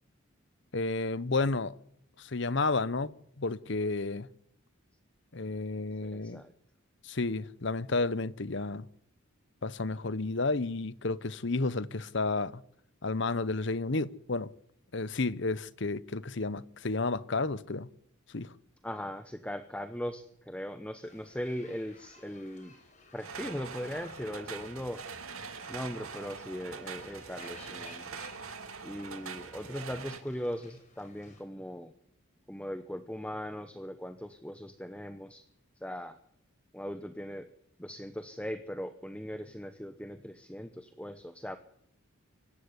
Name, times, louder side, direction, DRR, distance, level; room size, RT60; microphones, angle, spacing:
voice 1, 0.7-1.7 2.2-4.3 5.3-6.4 7.0-8.9 9.6-12.6 13.0-14.5 14.9-17.9 18.3-18.5, left 3 dB, 60° left, 0.9 m, -31 dB
voice 2, 6.0-6.5 18.8-22.7 23.1-25.0 25.7-28.1 28.8-31.9 32.5-35.4 35.8-36.2 36.7-37.5 37.8-41.6, equal, 5° left, 1.0 m, -39 dB
sound 1, 21.0-31.4, left 3 dB, 35° left, 6.2 m, -57 dB
sound 2, 23.2-30.2, right 5 dB, 85° right, 2.3 m, -43 dB
24.5 x 15.0 x 9.7 m
head